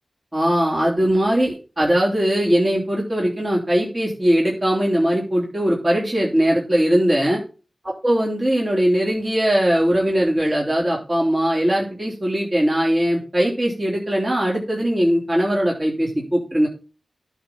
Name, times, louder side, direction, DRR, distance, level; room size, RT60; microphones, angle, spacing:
voice 1, 0.3-7.4 8.0-16.7, equal, 35° right, -3 dB, 3.3 m, -20 dB
11.5 x 4.1 x 5.7 m, 0.34 s
cardioid pair, 60°, 0 cm